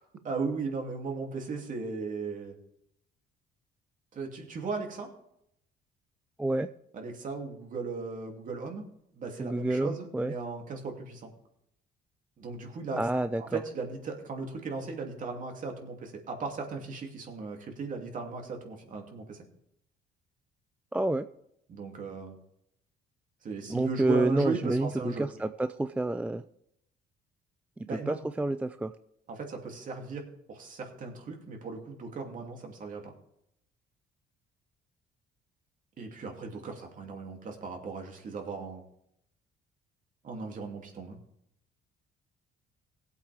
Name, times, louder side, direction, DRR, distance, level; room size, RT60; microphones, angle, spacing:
voice 1, 0.2-2.6 4.1-5.1 6.9-8.8 9.1-11.3 12.4-13.0 13.4-19.4 21.7-22.4 23.4-25.3 27.8-28.2 29.3-30.2 30.5-33.1 36.0-38.8 40.2-41.2, right 4 dB, 45° right, 2 dB, 2.7 m, -37 dB
voice 2, 6.4-6.7 9.4-10.3 13.0-13.6 20.9-21.3 23.7-26.4 27.9-28.9, right 2 dB, 10° right, 10 dB, 0.3 m, -29 dB
19.0 x 8.2 x 3.5 m, 0.76 s
cardioid pair, 115°, 18 cm